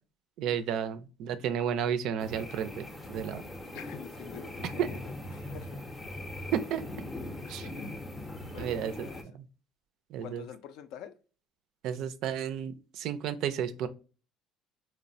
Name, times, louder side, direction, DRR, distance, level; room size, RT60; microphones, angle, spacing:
voice 1, 0.4-3.4 4.6-4.9 6.5-6.8 7.5-7.7 8.6-9.1 9.3-9.5 10.1-10.4 11.8-13.9, right 8 dB, 65° right, 0.3 m, -32 dB
sound 1, 2.2-9.2, left 1 dB, 10° left, 0.5 m, -41 dB
voice 2, 3.7-5.8 7.4-7.9 8.5-9.2 10.2-11.2, left 9 dB, 70° left, 0.4 m, -47 dB
3.0 x 2.0 x 2.5 m
cardioid pair, 120°, 0 cm